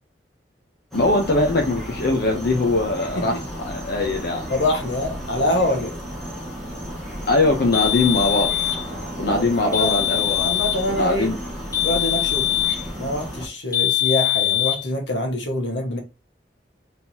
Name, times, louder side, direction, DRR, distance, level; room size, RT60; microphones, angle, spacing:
voice 1, 0.9-3.4 3.6-4.4 7.3-8.5 9.2-10.5 10.9-11.4, left 2 dB, 60° left, 0.8 m, -21 dB
sound 1, 0.9-13.5, equal, ahead, 1.7 m, -33 dB
voice 2, 4.5-5.9 9.2-10.0 10.4-11.3 11.8-12.6 13.0-16.0, left 1 dB, 85° left, 1.4 m, -25 dB
sound 2, 7.7-8.8 9.7-10.8 11.7-12.9 13.7-14.8, left 15 dB, 20° left, 2.0 m, -22 dB
4.5 x 3.6 x 2.9 m
head